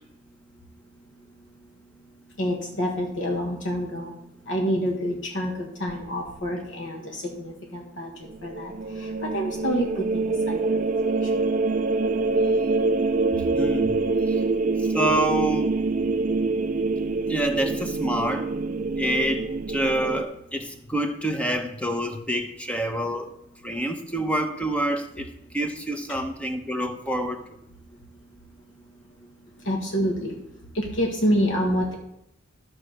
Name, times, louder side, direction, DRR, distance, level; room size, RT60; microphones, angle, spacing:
voice 1, 2.4-4.1 4.5-8.1 8.4-10.9 11.2-11.3 29.6-30.4 30.7-31.9, equal, 65° left, 0 dB, 1.5 m, -27 dB
sound 1, 8.3-20.2, right 3 dB, 40° right, 0.4 m, -25 dB
voice 2, 13.5-14.0 14.9-15.8 17.3-18.5 19.0-23.3 23.6-25.3 25.5-27.4, right 1 dB, 5° left, 6 dB, 0.9 m, -27 dB
13.0 x 4.7 x 6.5 m, 0.81 s
head